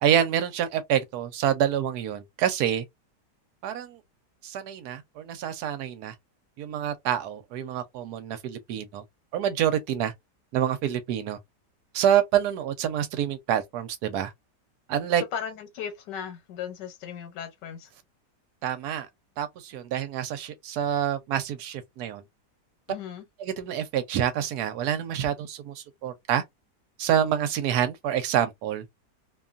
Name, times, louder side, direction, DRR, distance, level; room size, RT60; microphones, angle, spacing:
voice 1, 0.0-2.8 3.6-4.0 4.4-6.1 6.6-9.0 9.3-10.1 10.5-11.4 11.9-14.3 14.9-15.2 18.6-19.1 19.4-22.2 23.4-26.4 27.0-28.8, right 10 dB, 70° right, 1.1 m, -27 dB
voice 2, 15.3-17.9 22.9-23.3, left 8 dB, 80° left, 1.4 m, -36 dB
2.8 x 2.3 x 2.4 m
omnidirectional pair, 1.8 m